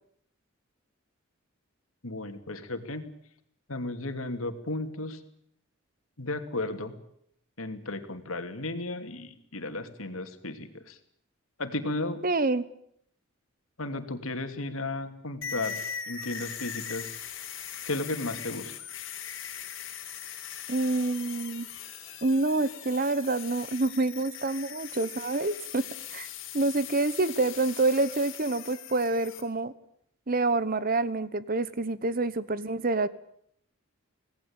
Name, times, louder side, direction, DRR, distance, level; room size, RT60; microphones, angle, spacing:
voice 1, 2.0-3.0 3.7-5.2 6.2-6.9 7.6-11.0 11.6-12.2 13.8-15.8 16.1-17.1 17.8-18.7, left 2 dB, 85° left, 7 dB, 2.8 m, -34 dB
voice 2, 12.2-12.6 20.7-21.7 22.2-25.8 26.1-26.3 26.5-29.7 30.3-33.1, right 2 dB, 45° right, 16 dB, 1.1 m, -27 dB
sound 1, 15.4-29.4, left 8 dB, 65° left, 4.0 m, -40 dB
26.0 x 18.5 x 8.9 m, 0.71 s
head